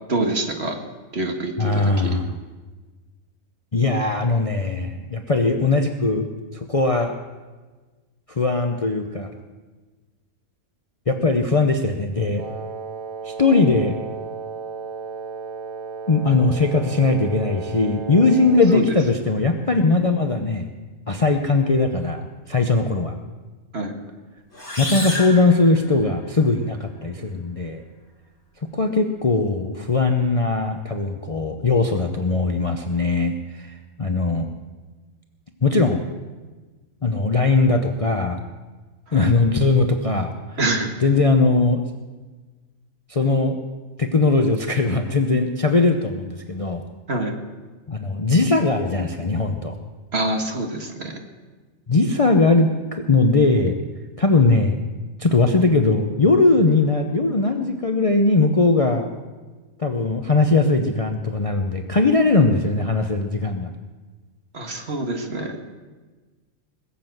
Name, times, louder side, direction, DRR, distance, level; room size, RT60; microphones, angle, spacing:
voice 1, 0.1-0.8 1.1-1.7 2.0-2.1 18.7-18.8 23.7-23.9 39.1-39.3 40.6-40.9 47.1-47.3 50.1-51.2 64.5-65.6, right 2 dB, 50° right, 3 dB, 1.9 m, -25 dB
voice 2, 1.6-2.4 3.7-6.3 6.5-7.1 8.3-9.3 11.1-12.4 13.2-13.9 16.1-20.7 21.1-23.1 24.8-27.8 28.7-34.5 35.6-36.0 37.0-38.4 39.1-40.6 41.0-41.8 43.1-43.6 44.0-46.8 47.9-49.8 51.9-53.8 54.2-54.8 55.2-59.1 59.8-63.7, left 3 dB, 30° left, 4 dB, 0.7 m, -20 dB
Wind instrument woodwind instrument, 12.4-18.8, right 5 dB, 80° right, 1.5 m, -34 dB
sound 1, 24.5-26.4, left 1 dB, 50° left, 4.0 m, -31 dB
20.5 x 7.7 x 7.8 m, 1.3 s
omnidirectional pair, 1.4 m